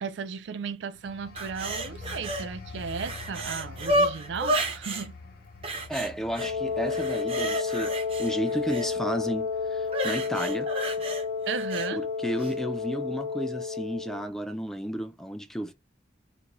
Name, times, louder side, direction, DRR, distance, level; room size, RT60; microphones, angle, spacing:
voice 1, 0.0-5.1 11.5-12.0, right 6 dB, 75° right, 0.4 m, -35 dB
sound 1, 0.9-11.3 11.7-12.0, left 3 dB, 55° left, 0.6 m, -46 dB
sound 2, 1.4-2.5 2.8-5.1 5.6-6.5 6.9-8.9 9.9-11.9 12.4-12.5, right 1 dB, 30° right, 0.7 m, -31 dB
voice 2, 5.9-10.7 12.2-15.7, equal, ahead, 0.4 m, -32 dB
Wind instrument woodwind instrument, 6.4-14.2, left 5 dB, 50° right, 1.0 m, -31 dB
2.6 x 2.2 x 2.9 m
head